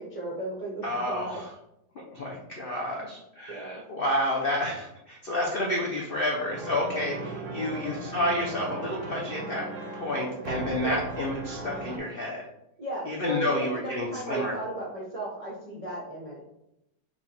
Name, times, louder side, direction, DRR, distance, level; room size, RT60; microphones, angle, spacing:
voice 1, 0.0-1.4 3.5-3.8 7.5-7.9 10.8-11.0 12.8-16.4, right 2 dB, 50° right, -4 dB, 0.4 m, -35 dB
voice 2, 0.8-1.5 2.1-12.4 13.1-14.6, left 1 dB, 75° left, -1 dB, 0.5 m, -30 dB
sound 1, 6.5-12.0, right 3 dB, 65° right, 0.8 m, -37 dB
4.5 x 2.4 x 4.1 m, 0.83 s
omnidirectional pair, 1.9 m